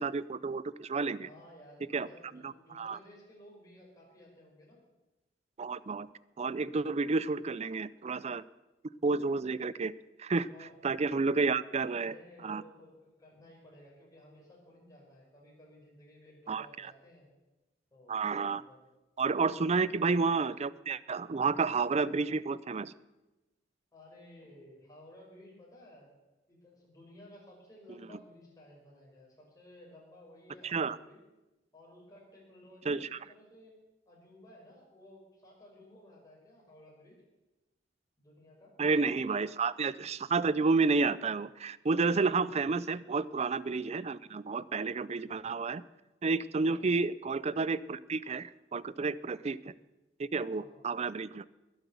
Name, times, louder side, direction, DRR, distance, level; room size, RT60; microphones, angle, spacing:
voice 1, 0.0-1.3 1.9-2.1 2.4-3.0 5.6-6.1 6.4-8.4 9.0-9.9 10.2-10.5 10.8-12.1 12.4-12.6 16.5-16.7 18.1-18.6 19.2-22.9 30.6-31.0 32.9-33.2 38.8-45.8 46.2-49.7 50.2-51.4, right 4 dB, 35° right, 18 dB, 0.5 m, -30 dB
voice 2, 1.2-4.8 10.5-10.8 11.9-17.3 17.9-18.2 18.5-18.8 19.5-19.9 23.9-26.1 26.5-31.2 31.7-33.8 34.0-37.2 38.2-39.4 42.3-42.5 46.5-46.9 50.5-50.8, left 1 dB, 20° left, -4 dB, 5.1 m, -56 dB
21.5 x 8.1 x 7.1 m, 1.1 s
head